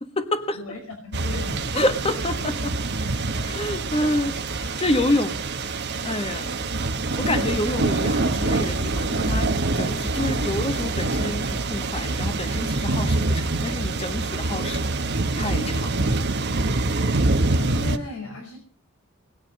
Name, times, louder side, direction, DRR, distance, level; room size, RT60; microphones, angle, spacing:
voice 1, 0.0-0.6 1.7-2.8 3.4-5.3 6.0-6.5 7.2-16.2, left 1 dB, 25° left, 8 dB, 1.4 m, -28 dB
voice 2, 0.5-1.7 6.4-6.6 17.6-18.6, left 2 dB, 85° left, 1 dB, 5.4 m, -36 dB
sound 1, 1.1-18.0, right 2 dB, 55° right, 1.2 m, -25 dB
21.0 x 9.4 x 6.4 m, 0.43 s
head